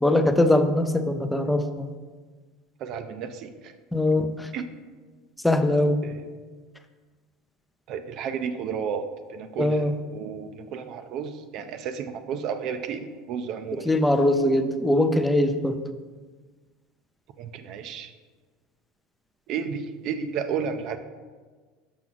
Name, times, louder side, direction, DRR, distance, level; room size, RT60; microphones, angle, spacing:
voice 1, 0.0-1.9 3.9-4.5 5.4-6.0 9.6-9.9 13.7-15.8, left 1 dB, 5° left, 8 dB, 0.4 m, -22 dB
voice 2, 2.8-3.7 4.5-4.7 6.0-6.2 7.9-9.8 10.1-13.9 17.4-18.1 19.5-21.0, right 7 dB, 50° right, 8 dB, 0.4 m, -32 dB
6.0 x 5.7 x 3.9 m, 1.4 s
supercardioid pair, 130°, 0 cm